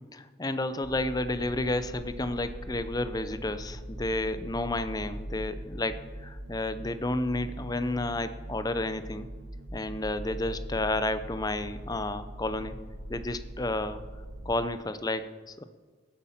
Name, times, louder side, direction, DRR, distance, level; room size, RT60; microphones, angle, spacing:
voice 1, 0.1-9.3 9.7-12.8 13.1-14.0 14.5-15.6, left 2 dB, 20° left, 11 dB, 0.6 m, -31 dB
sound 1, 0.8-14.5, right 1 dB, 85° right, 1.4 m, -41 dB
17.0 x 8.3 x 5.9 m, 1.4 s
head